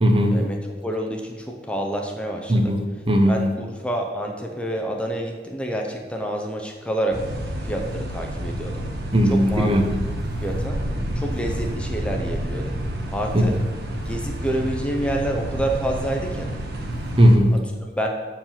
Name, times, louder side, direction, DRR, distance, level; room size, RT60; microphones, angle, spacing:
voice 1, 0.0-0.4 2.5-3.3 9.1-9.9 13.3-13.4 17.2-17.5, equal, 30° right, 4 dB, 0.7 m, -17 dB
voice 2, 0.8-2.7 3.3-7.2 7.6-8.8 9.3-9.7 10.4-10.8 11.2-12.8 13.1-13.6 13.9-16.5 17.5-18.1, right 1 dB, 5° left, 1 dB, 0.6 m, -28 dB
sound 1, 7.1-17.4, right 1 dB, 60° right, 1.0 m, -29 dB
7.1 x 4.7 x 5.7 m, 1.4 s
head